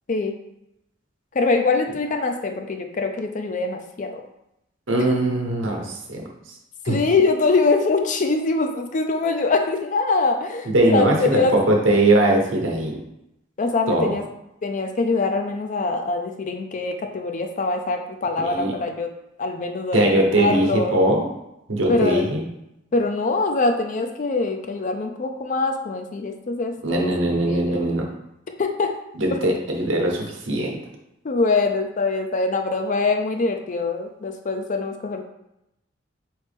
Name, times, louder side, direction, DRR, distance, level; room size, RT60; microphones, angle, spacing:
voice 1, 1.3-4.2 5.0-5.1 6.9-11.6 13.6-14.2 14.6-19.1 19.4-20.9 21.9-22.2 22.9-27.1 27.5-27.9 28.6-28.9 31.2-35.2, left 3 dB, 40° left, 5 dB, 0.4 m, -23 dB
voice 2, 4.9-6.2 6.8-7.0 10.7-13.0 13.9-14.1 18.4-18.7 19.9-21.3 21.7-22.5 26.8-28.0 29.1-30.8, right 1 dB, 85° right, 0 dB, 1.0 m, -20 dB
4.1 x 3.2 x 3.3 m, 0.86 s
head